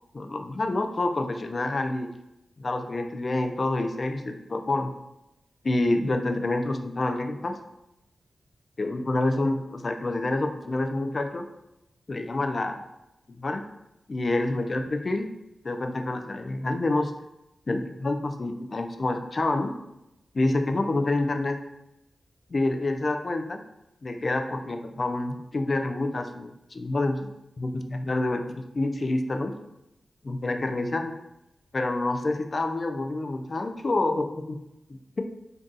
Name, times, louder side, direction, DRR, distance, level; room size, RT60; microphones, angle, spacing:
voice 1, 0.1-2.1 2.6-4.9 5.6-7.6 8.8-11.5 12.1-12.8 13.4-13.6 14.1-15.3 15.6-17.1 17.7-19.7 20.3-21.6 22.5-23.6 24.0-27.3 27.6-29.5 30.2-31.2 31.7-34.6 34.9-35.2, left 2 dB, 50° left, 6 dB, 0.3 m, -27 dB
2.6 x 2.3 x 3.8 m, 0.89 s
cardioid pair, 40°, 0 cm